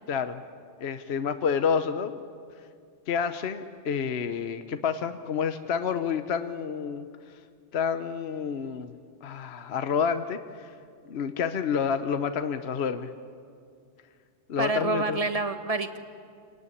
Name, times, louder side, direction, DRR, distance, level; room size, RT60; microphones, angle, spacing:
voice 1, 0.1-0.4 0.8-2.2 3.1-7.1 7.7-8.9 9.2-10.7 11.0-13.1 14.5-15.3, left 6 dB, 60° left, 10 dB, 1.0 m, -29 dB
voice 2, 14.6-16.0, right 3 dB, 30° right, 9 dB, 1.3 m, -27 dB
26.5 x 18.5 x 9.8 m, 2.3 s
omnidirectional pair, 1.3 m